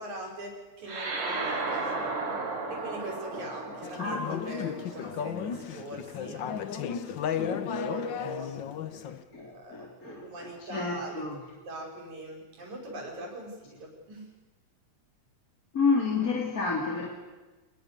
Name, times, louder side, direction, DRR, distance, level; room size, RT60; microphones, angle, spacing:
voice 1, 0.0-2.0 2.7-8.5 9.4-11.3 11.7-14.3, right 1 dB, 75° right, 1 dB, 6.9 m, -41 dB
sound 1, 0.9-5.6, right 3 dB, 45° right, 4.3 m, -35 dB
Conversation / Chatter, 3.8-9.2, left 8 dB, 60° left, 1.3 m, -34 dB
voice 2, 9.0-11.4 15.7-17.1, left 4 dB, 30° left, -1 dB, 3.2 m, -30 dB
27.5 x 21.0 x 6.8 m, 1.2 s
omnidirectional pair, 3.4 m